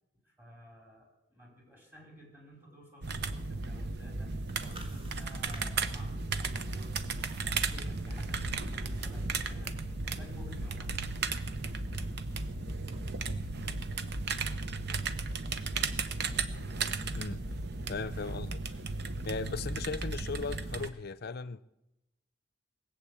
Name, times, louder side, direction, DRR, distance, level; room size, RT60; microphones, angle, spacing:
voice 1, 0.2-6.9 7.4-11.2 11.7-11.8 16.1-16.2, equal, 10° right, 4.9 m, -53 dB
sound 1, 3.0-20.9, right 4 dB, 60° right, 0.9 m, -35 dB
sound 2, 4.2-13.3, equal, 30° right, 2.3 m, -47 dB
voice 2, 17.9-18.6 19.2-21.6, left 4 dB, 55° left, 0.6 m, -37 dB
19.5 x 7.8 x 8.5 m
head